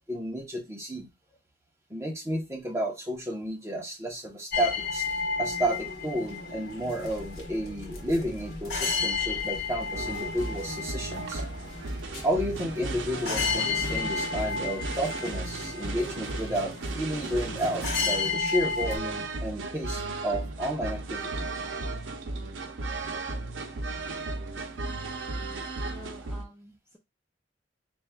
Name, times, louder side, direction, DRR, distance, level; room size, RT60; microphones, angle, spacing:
voice 1, 0.1-1.1 1.9-5.1 5.4-11.4 12.2-21.5, equal, 15° right, 0 dB, 1.1 m, -31 dB
sound 1, 4.5-19.0, left 5 dB, 55° left, 1.4 m, -33 dB
sound 2, 7.1-14.2, left 1 dB, 40° right, 2.4 m, -47 dB
sound 3, 9.9-26.4, right 2 dB, 90° right, 0.6 m, -35 dB
voice 2, 25.9-27.0, equal, 5° left, -1 dB, 0.5 m, -49 dB
4.1 x 3.2 x 2.3 m, 0.22 s
head